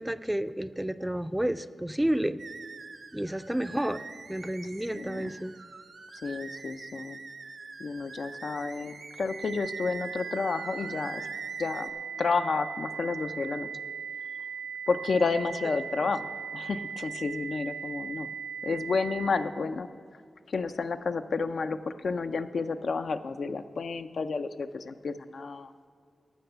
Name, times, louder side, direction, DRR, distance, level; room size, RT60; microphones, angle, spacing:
voice 1, 0.0-2.4 3.1-4.0 4.3-5.5 16.0-16.1, right 1 dB, 10° right, 12 dB, 0.4 m, -30 dB
sound 1, 2.4-11.9, right 4 dB, 70° right, 0.8 m, -45 dB
voice 2, 4.9-5.3 6.2-7.2 7.8-11.3 11.6-11.9 12.2-13.7 14.9-18.3 18.6-19.9 20.5-25.7, left 4 dB, 75° left, 9 dB, 0.5 m, -31 dB
sound 2, 9.3-19.3, right 6 dB, 90° right, 1.5 m, -38 dB
13.5 x 6.0 x 6.7 m, 2.2 s
cardioid pair, 65°, 0 cm